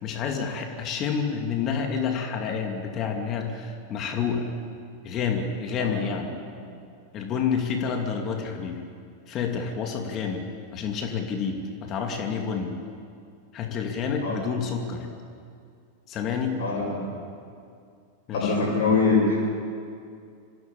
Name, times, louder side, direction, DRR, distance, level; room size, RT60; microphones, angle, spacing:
voice 1, 0.0-4.5 5.0-6.3 7.1-8.8 9.3-10.4 10.7-12.8 13.5-15.1 16.1-16.6 18.3-18.6, left 6 dB, 35° left, 3 dB, 2.7 m, -29 dB
voice 2, 16.6-17.0 18.3-19.3, left 4 dB, 55° left, -4 dB, 6.5 m, -23 dB
26.0 x 17.0 x 8.7 m, 2.4 s
figure-of-eight pair, 90°, 0 cm